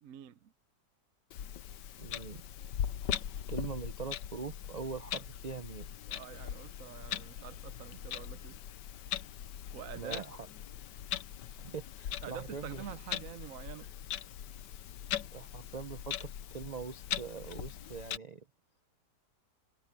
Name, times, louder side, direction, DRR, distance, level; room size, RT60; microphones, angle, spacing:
voice 1, 0.0-0.5 6.1-8.6 9.7-10.3 12.2-13.9, right 10 dB, 60° right, 1.0 m, -46 dB
Clock, 1.3-18.2, left 10 dB, 85° left, 1.5 m, -40 dB
voice 2, 2.0-2.4 3.5-5.9 9.9-10.5 11.6-12.8 15.3-18.4, right 5 dB, 45° right, 0.5 m, -42 dB
omnidirectional pair, 1.8 m